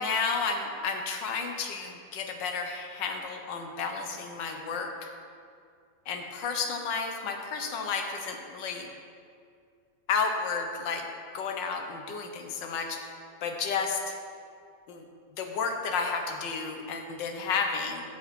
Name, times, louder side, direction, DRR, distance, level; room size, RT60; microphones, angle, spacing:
voice 1, 0.0-5.1 6.1-8.9 10.1-11.1 11.3-13.1 13.4-14.2 14.9-15.0 15.3-18.0, left 5 dB, 70° left, 4 dB, 1.6 m, -32 dB
13.0 x 5.3 x 5.3 m, 2.3 s
omnidirectional pair, 2.2 m